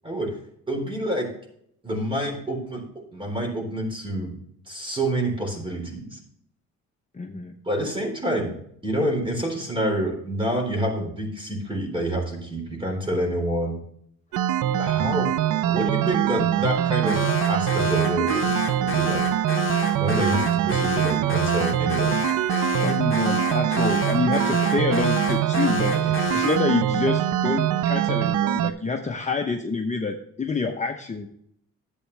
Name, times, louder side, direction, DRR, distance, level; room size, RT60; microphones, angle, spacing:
voice 1, 0.0-0.4 0.7-1.3 1.8-2.8 3.1-4.3 4.7-6.2 7.7-8.5 8.8-13.8 14.8-15.3 15.7-17.2 17.5-19.3 20.0-22.2 25.9-26.1, right 1 dB, 15° right, 2 dB, 3.8 m, -27 dB
voice 2, 7.1-7.5 15.7-15.8 22.8-31.3, left 4 dB, 25° left, 2 dB, 0.9 m, -27 dB
sound 1, 14.3-28.7, right 12 dB, 85° right, 0.6 m, -23 dB
Alarm, 17.1-26.7, left 6 dB, 40° left, 1.2 m, -31 dB
11.0 x 8.4 x 3.3 m, 0.69 s
cardioid pair, 90°, 30 cm